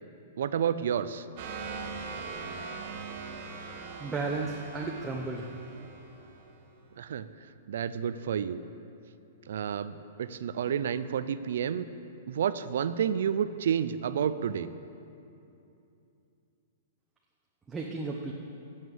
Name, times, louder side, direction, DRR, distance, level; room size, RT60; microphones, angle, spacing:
voice 1, 0.4-1.3 7.0-7.3 7.7-8.6 9.5-11.9 12.3-14.7, right 8 dB, 75° right, 13 dB, 0.4 m, -30 dB
sound 1, 1.4-6.8, right 4 dB, 45° right, 1.3 m, -41 dB
voice 2, 4.0-5.5 17.7-18.3, right 3 dB, 10° right, -1 dB, 0.7 m, -33 dB
9.3 x 7.3 x 8.0 m, 2.7 s
hypercardioid pair, 155°, 0 cm